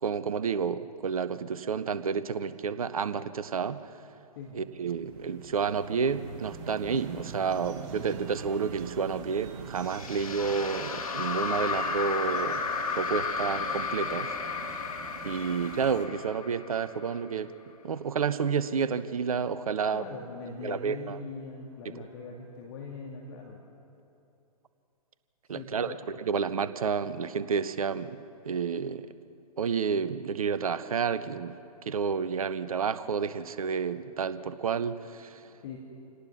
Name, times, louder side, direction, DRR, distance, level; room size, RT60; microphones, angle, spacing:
voice 1, 0.0-3.9 4.5-12.6 12.9-14.3 15.2-17.5 17.8-20.0 20.6-21.2 21.9-22.1 25.5-29.1 29.6-35.4, right 6 dB, 60° right, 13 dB, 1.0 m, -30 dB
sound 1, 4.4-16.1, right 5 dB, 30° right, 1.9 m, -45 dB
sound 2, 9.8-17.1, left 5 dB, 60° left, 2.0 m, -33 dB
voice 2, 19.9-23.6 25.5-26.0 35.6-35.8, left 4 dB, 40° left, -1 dB, 2.5 m, -41 dB
27.5 x 18.5 x 5.9 m, 2.8 s
figure-of-eight pair, 120°, 21 cm